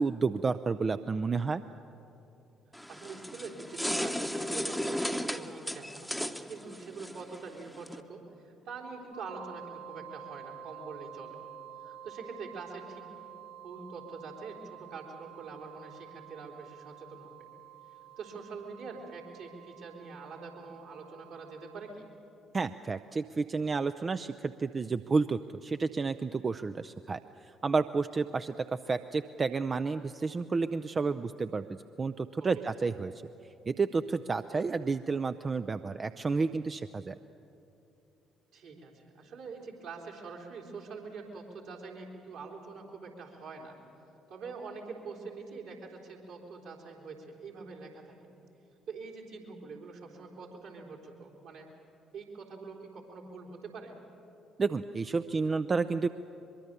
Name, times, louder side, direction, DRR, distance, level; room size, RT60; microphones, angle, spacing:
voice 1, 0.0-1.6 22.5-33.1 33.7-37.1 54.6-56.1, right 4 dB, 35° right, 10 dB, 0.5 m, -31 dB
sound 1, 2.7-8.0, equal, ahead, 1.0 m, -35 dB
voice 2, 2.9-11.4 11.8-13.1 13.6-17.5 18.2-22.0 32.4-32.7 38.5-43.8 44.3-48.2 48.9-51.7 52.1-53.9, right 4 dB, 65° right, -2 dB, 3.8 m, -45 dB
sound 2, 9.1-21.9, right 9 dB, 85° left, 1.3 m, -49 dB
23.0 x 22.5 x 6.8 m, 2.9 s
figure-of-eight pair, 50°, 0 cm